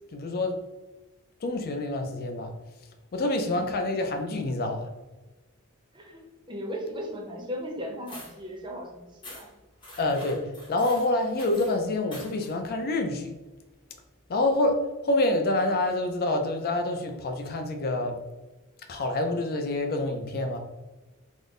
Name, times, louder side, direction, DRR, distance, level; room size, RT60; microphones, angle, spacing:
voice 1, 0.1-0.6 1.4-2.5 3.1-4.9 10.0-13.3 14.3-18.2 18.9-20.6, left 2 dB, 45° left, 5 dB, 0.4 m, -27 dB
voice 2, 3.4-3.8 5.9-9.5, equal, 20° right, 1 dB, 0.6 m, -37 dB
sound 1, 8.1-8.4 9.2-9.5 9.8-11.8 12.1-12.5, left 1 dB, 20° left, 0.9 m, -45 dB
3.7 x 2.1 x 3.6 m, 1.1 s
head